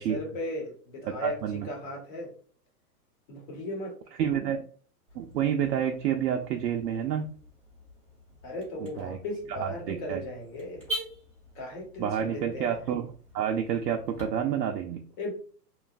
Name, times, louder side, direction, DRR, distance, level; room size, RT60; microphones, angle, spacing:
voice 1, 0.0-2.3 3.3-3.9 8.4-10.9 11.5-12.8 15.2-15.3, left 1 dB, 30° left, 0 dB, 1.0 m, -36 dB
voice 2, 1.1-1.7 4.2-4.6 5.2-7.3 9.0-9.2 9.6-10.2 12.0-13.1 13.3-15.0, right 9 dB, 90° right, 3 dB, 0.5 m, -29 dB
Car / Alarm, 5.1-14.2, equal, 5° left, 0.8 m, -44 dB
3.0 x 2.3 x 2.4 m, 0.43 s
hypercardioid pair, 155°, 49 cm